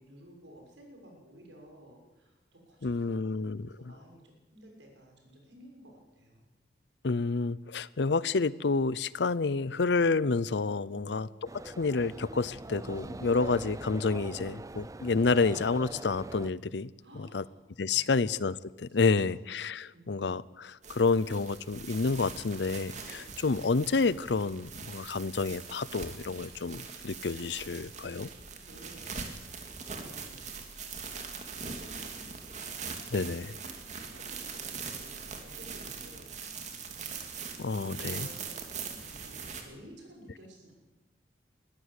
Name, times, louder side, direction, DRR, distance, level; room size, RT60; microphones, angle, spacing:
voice 1, 0.0-6.5 10.9-11.4 17.0-17.5 17.9-18.2 18.9-19.3 19.9-20.3 27.5-27.7 28.5-29.1 30.0-30.5 31.6-32.4 34.0-37.0 37.3-40.7, equal, 80° right, 6.5 m, -54 dB
voice 2, 2.8-3.9 7.0-11.3 11.6-17.4 17.8-28.3 33.1-33.6 37.6-38.3, left 4 dB, 70° left, 0.6 m, -29 dB
sound 1, 11.5-16.5, right 2 dB, 20° right, 0.5 m, -43 dB
sound 2, 20.8-39.6, right 5 dB, 40° right, 2.6 m, -42 dB
21.5 x 14.5 x 8.3 m
head